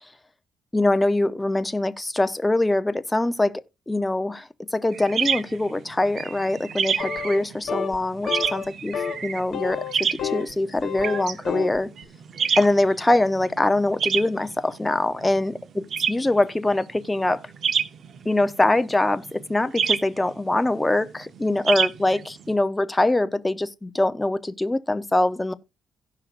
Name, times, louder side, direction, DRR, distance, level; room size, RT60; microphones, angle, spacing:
voice 1, 0.7-8.9 9.2-11.9 12.6-17.4 18.2-25.5, left 2 dB, 15° left, 0.7 m, -23 dB
sound 1, 4.9-22.5, right 7 dB, 55° right, 0.8 m, -29 dB
sound 2, 7.0-7.4 7.7-8.0 8.3-8.6 8.9-9.2 9.5-10.5 10.8-11.8, left 7 dB, 60° left, 1.2 m, -29 dB
17.0 x 5.8 x 2.5 m
cardioid pair, 90°, 0 cm